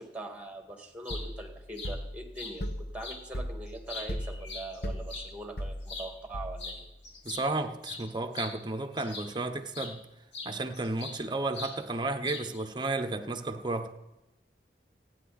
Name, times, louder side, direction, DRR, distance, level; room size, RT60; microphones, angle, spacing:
voice 1, 0.0-2.6 2.9-6.8, right 1 dB, 10° right, 2.1 m, -42 dB
sound 1, 0.8-1.2 1.8-1.9 2.4-2.6 3.0-3.2 3.7-5.3 5.8-6.1 6.6-6.8 7.0-9.4 9.7-9.9 10.3-11.2 11.5-11.8 12.2-12.7, left 3 dB, 90° left, 3.2 m, -41 dB
sound 2, 1.1-6.9, equal, 60° left, 1.4 m, -38 dB
voice 2, 7.2-10.1 10.4-13.9, right 2 dB, 25° right, 1.0 m, -33 dB
28.0 x 9.5 x 4.2 m
head